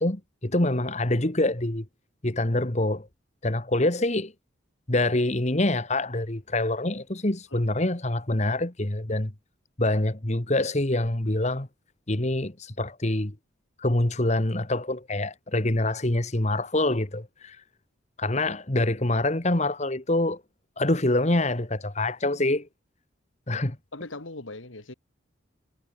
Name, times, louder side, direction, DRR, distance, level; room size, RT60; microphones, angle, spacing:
voice 1, 0.0-1.9 2.2-3.1 3.4-4.3 4.9-9.3 9.8-11.7 12.1-13.3 13.8-17.6 18.2-20.4 20.8-22.7 23.5-23.8, left 1 dB, 35° left, 1.7 m, -25 dB
voice 2, 23.9-24.9, left 2 dB, 90° left, 2.9 m, -40 dB
head